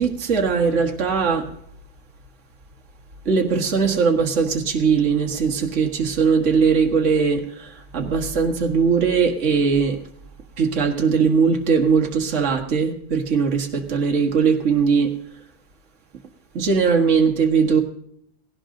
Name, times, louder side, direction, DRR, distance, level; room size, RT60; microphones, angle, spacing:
voice 1, 0.0-1.5 3.3-10.0 10.6-15.1 16.6-17.8, right 5 dB, 45° right, 2 dB, 1.9 m, -20 dB
18.0 x 17.0 x 3.8 m, 0.69 s
omnidirectional pair, 1.8 m